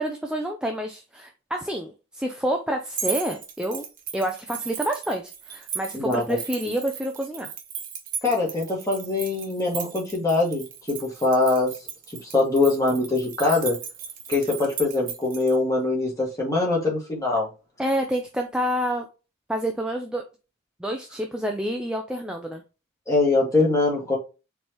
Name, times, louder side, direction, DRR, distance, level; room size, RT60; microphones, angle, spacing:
voice 1, 0.0-3.8 4.1-7.5 17.8-19.1 19.5-20.2 20.8-22.6, right 1 dB, 5° right, 0.4 m, -28 dB
sound 1, 2.9-15.5, right 7 dB, 40° right, 0.9 m, -36 dB
voice 2, 8.2-11.7 12.2-13.8 14.3-17.5 23.1-24.2, left 3 dB, 15° left, 1.7 m, -23 dB
4.4 x 3.2 x 2.9 m
head